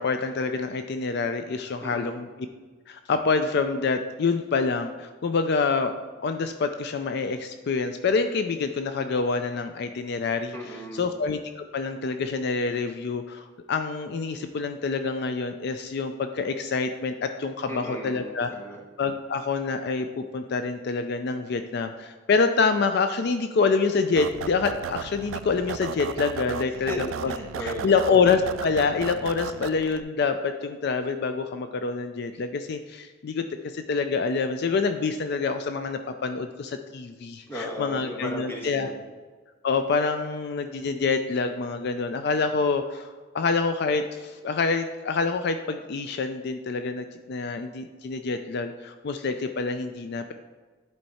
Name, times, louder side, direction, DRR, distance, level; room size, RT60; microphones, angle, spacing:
voice 1, 0.0-2.3 2.9-5.9 6.2-10.5 10.9-18.5 19.0-26.9 27.2-27.3 27.6-38.9 39.6-50.3, left 4 dB, 60° left, 8 dB, 0.4 m, -26 dB
voice 2, 1.8-2.2 10.5-11.1 17.7-18.8 26.7-27.0 27.3-28.1 37.5-39.1, left 1 dB, 10° left, -2 dB, 1.4 m, -36 dB
sound 1, 24.2-30.0, right 7 dB, 85° right, 0.3 m, -35 dB
10.5 x 4.5 x 4.2 m, 1.4 s
head